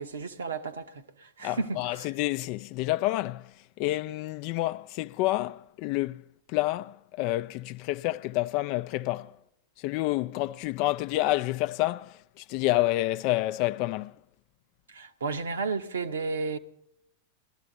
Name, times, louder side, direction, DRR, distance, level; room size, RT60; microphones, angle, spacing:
voice 1, 0.0-2.1 14.9-16.6, right 4 dB, 70° right, 0.9 m, -33 dB
voice 2, 1.4-6.2 6.5-9.4 9.8-14.2, left 17 dB, 45° left, 0.4 m, -29 dB
18.5 x 12.5 x 3.9 m
figure-of-eight pair, 90°, 0 cm